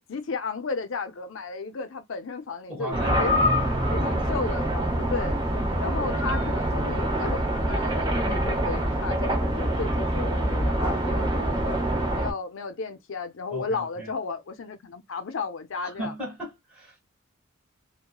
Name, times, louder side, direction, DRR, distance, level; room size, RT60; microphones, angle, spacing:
voice 1, 0.0-3.6 3.9-5.4 5.8-11.8 12.1-16.1, left 4 dB, 65° left, 0.5 m, -34 dB
voice 2, 2.7-3.3 5.4-5.7 10.9-11.3 13.5-14.1 15.8-17.0, equal, 5° right, 1.4 m, -37 dB
sound 1, 2.9-12.3, equal, 20° right, 0.7 m, -25 dB
2.9 x 2.2 x 2.2 m
head